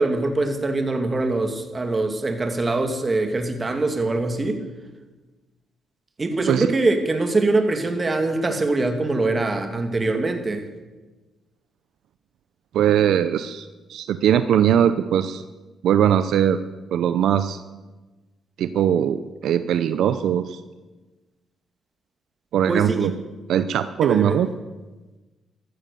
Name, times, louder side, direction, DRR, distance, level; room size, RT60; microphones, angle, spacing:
voice 1, 0.0-4.6 6.2-10.7 22.7-23.2 24.0-24.4, right 2 dB, 25° right, 6 dB, 2.2 m, -23 dB
voice 2, 12.7-15.4 15.8-16.6 16.9-17.6 18.6-20.6 22.5-23.1 23.5-24.5, right 9 dB, 75° right, 11 dB, 0.6 m, -20 dB
14.0 x 13.5 x 6.9 m, 1.2 s
cardioid pair, 90°, 0 cm